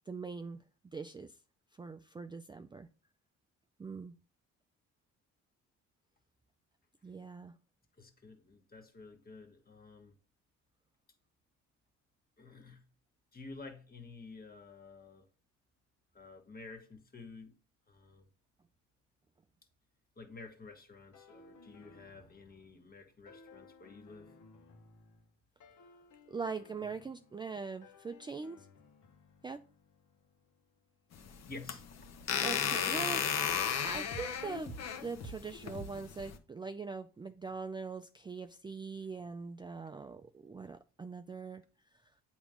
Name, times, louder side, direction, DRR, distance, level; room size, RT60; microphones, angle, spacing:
voice 1, 0.1-0.6 0.9-1.4 1.8-2.9 3.8-4.2 7.0-7.6 26.3-28.7 29.4-29.6 32.4-41.6 41.9-42.0, right 4 dB, 15° right, 0.4 m, -42 dB
voice 2, 8.0-10.1 12.4-12.8 13.3-15.2 16.1-17.5 17.9-18.3 20.2-24.3 31.5-31.8, left 3 dB, 30° left, 1.4 m, -51 dB
sound 1, 21.1-22.9 23.3-25.3 25.6-27.6 27.8-31.5 34.1-34.3 34.7-34.9 35.2-35.4 35.7-35.9, equal, 75° left, 1.3 m, -54 dB
sound 2, 31.1-36.4, left 7 dB, 60° left, 1.0 m, -34 dB
8.1 x 3.0 x 5.1 m
cardioid pair, 90°, 30 cm